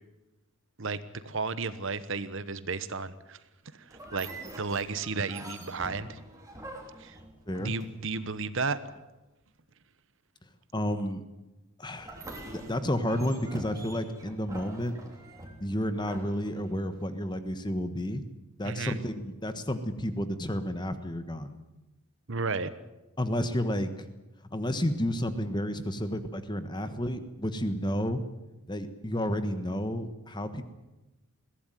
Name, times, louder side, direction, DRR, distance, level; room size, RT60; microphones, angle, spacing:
voice 1, 0.8-3.4 3.7-4.3 4.6-6.2 7.0-7.2 7.6-8.8 18.6-19.0 22.3-22.7, right 4 dB, 60° right, 14 dB, 1.1 m, -33 dB
sound 1, 3.9-8.2 12.0-17.1, right 1 dB, 15° right, 3.3 m, -45 dB
voice 2, 10.7-11.2 11.8-12.2 12.5-14.9 15.6-18.2 18.6-21.6 23.2-23.9 24.5-28.2 28.7-30.6, equal, 20° left, 10 dB, 1.3 m, -31 dB
22.0 x 16.5 x 9.2 m, 1.0 s
head